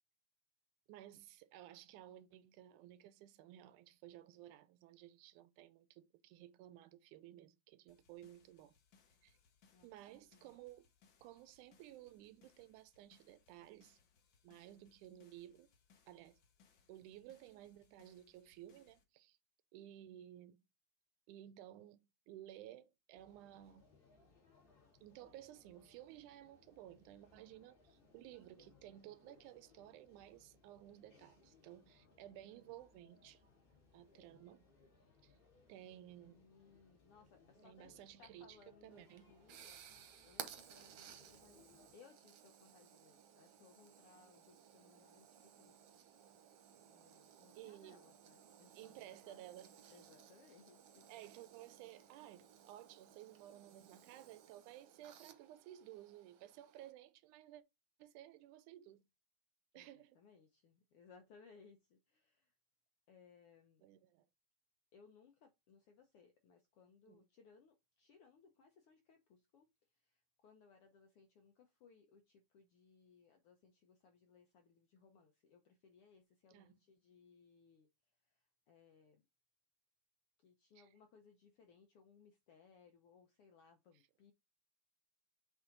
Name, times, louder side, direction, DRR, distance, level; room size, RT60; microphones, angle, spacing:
voice 1, 0.9-8.8 9.2-9.4 9.8-10.9 11.2-14.0 14.4-15.7 16.1-16.4 16.9-19.4 19.7-20.6 21.3-23.9 25.0-33.4 33.9-34.7 35.2-35.3 35.7-36.5 37.6-39.3 47.6-48.0 48.8-49.9 51.1-57.6 58.0-59.1 59.7-60.2 63.8-64.3 67.1-67.2 76.5-76.7 80.8-80.9, right 13 dB, 85° right, 2.1 m, -56 dB
sound 1, 7.9-19.0, left 6 dB, 55° left, 1.3 m, -73 dB
voice 2, 10.2-10.6 36.3-39.7 40.3-45.8 46.9-49.5 49.9-51.1 59.7-59.9 60.1-62.5 63.1-63.9 64.9-77.9 78.2-79.2 80.4-84.3, left 5 dB, 75° left, 1.3 m, -66 dB
sound 2, 23.1-42.0, left 4 dB, 40° left, 3.3 m, -69 dB
sound 3, 38.9-56.9, right 9 dB, 65° right, 1.7 m, -58 dB
7.2 x 3.5 x 3.8 m
omnidirectional pair, 3.6 m